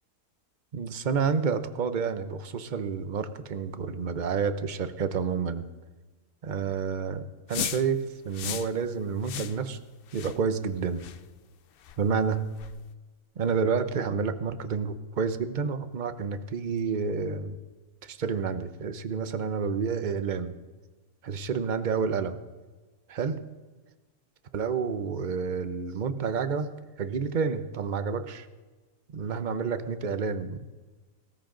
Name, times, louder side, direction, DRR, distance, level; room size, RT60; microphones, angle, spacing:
voice 1, 0.7-5.7 6.4-9.8 10.1-11.0 12.0-12.6 13.4-17.6 18.0-20.5 21.2-22.4 23.1-23.4 24.5-26.7 27.0-28.5 29.1-30.6, right 5 dB, 40° right, 10 dB, 0.7 m, -29 dB
sound 1, 7.5-7.9 8.3-8.7 9.2-9.6 10.1-10.4 11.0-11.2 11.8-12.0 12.6-12.7, left 10 dB, 85° left, 0.5 m, -35 dB
18.0 x 14.0 x 3.8 m, 1.3 s
omnidirectional pair, 1.6 m